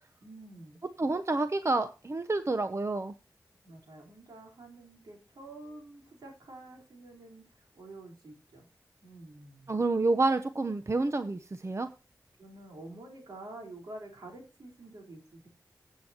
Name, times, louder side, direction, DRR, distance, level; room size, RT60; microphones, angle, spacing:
voice 1, 0.2-0.8 3.6-8.7 9.0-9.8 12.4-15.5, right 2 dB, 80° right, 0 dB, 4.3 m, -48 dB
voice 2, 1.0-3.1 9.7-11.9, right 3 dB, 40° right, 9 dB, 0.8 m, -29 dB
16.5 x 8.3 x 2.9 m, 0.31 s
cardioid pair, 45°, 7 cm